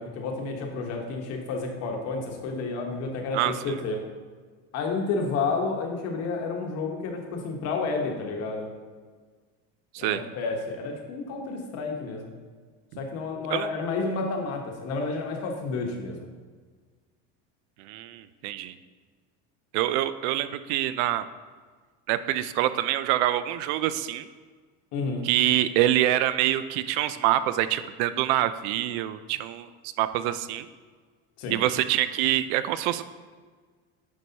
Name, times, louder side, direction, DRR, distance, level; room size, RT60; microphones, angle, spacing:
voice 1, 0.0-4.0 4.7-8.7 10.0-12.3 13.0-16.3 24.9-25.2 31.4-31.6, left 4 dB, 50° left, 2 dB, 1.1 m, -30 dB
voice 2, 17.8-18.7 19.7-21.2 22.1-24.3 25.2-29.7 30.0-30.7 31.5-33.0, right 13 dB, 85° right, 13 dB, 0.5 m, -25 dB
9.6 x 4.7 x 2.8 m, 1.5 s
cardioid pair, 160°, 33 cm